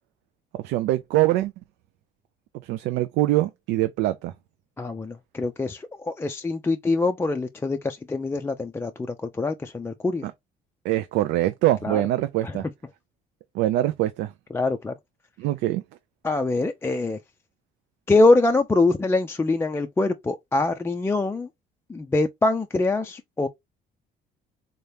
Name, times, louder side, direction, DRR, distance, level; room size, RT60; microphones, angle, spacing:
voice 1, 0.5-1.5 2.6-4.3 10.8-12.6 13.5-14.3 15.4-15.8, right 15 dB, 90° right, 0.4 m, -23 dB
voice 2, 4.8-10.3 11.8-12.0 12.4-12.6 14.5-14.9 16.2-17.2 18.1-21.5 21.9-23.5, left 2 dB, 15° left, 0.4 m, -24 dB
3.8 x 2.8 x 3.3 m
cardioid pair, 110°, 17 cm